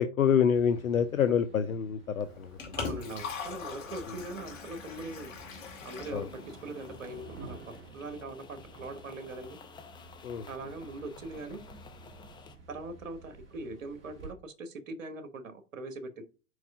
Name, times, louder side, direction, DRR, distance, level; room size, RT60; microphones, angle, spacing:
voice 1, 0.0-2.7 4.1-4.2 6.1-6.3 10.2-10.5, left 7 dB, 80° left, 9 dB, 0.6 m, -27 dB
sound 1, 0.5-14.3, right 3 dB, 30° right, 2.4 m, -52 dB
Liquid, 2.2-7.2, left 5 dB, 65° left, 2.0 m, -41 dB
voice 2, 2.8-5.3 5.8-9.6 10.5-11.6 12.7-16.2, right 2 dB, 70° right, 8 dB, 1.2 m, -41 dB
sound 2, 5.4-12.5, left 5 dB, 10° left, 0.6 m, -53 dB
4.8 x 4.7 x 5.2 m, 0.34 s
figure-of-eight pair, 95°, 41 cm